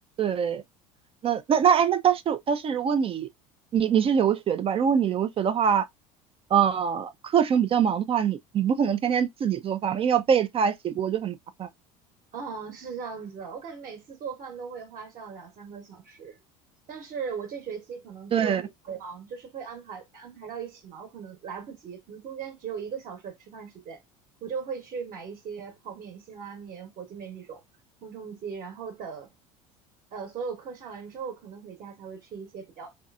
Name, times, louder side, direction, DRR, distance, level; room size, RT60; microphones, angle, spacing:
voice 1, 0.2-0.6 1.2-3.3 3.7-5.9 6.5-11.7 18.3-18.6, right 8 dB, 30° right, 0.4 m, -24 dB
voice 2, 12.3-16.4 16.9-24.0 24.4-27.6 28.0-29.3 30.1-32.9, right 6 dB, 45° right, 1.0 m, -38 dB
3.1 x 2.6 x 2.3 m
hypercardioid pair, 75°, 18 cm